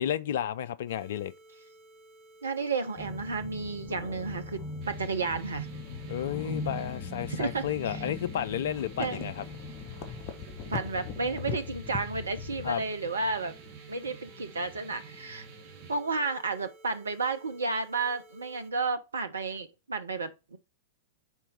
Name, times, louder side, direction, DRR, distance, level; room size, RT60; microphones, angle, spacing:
voice 1, 0.0-1.3 6.1-9.4 12.6-12.8, left 10 dB, 55° left, 0.3 m, -32 dB
sound 1, 0.9-18.7, right 1 dB, 20° right, 1.4 m, -56 dB
voice 2, 2.4-5.7 7.3-8.1 9.0-9.2 10.7-13.6 13.9-15.5 15.9-20.6, right 4 dB, 75° right, 0.5 m, -32 dB
sound 2, 3.0-12.7, left 4 dB, 35° left, 1.1 m, -39 dB
sound 3, 4.8-16.0, right 6 dB, 35° right, 1.7 m, -50 dB
4.5 x 4.4 x 5.0 m
figure-of-eight pair, 95°, 0 cm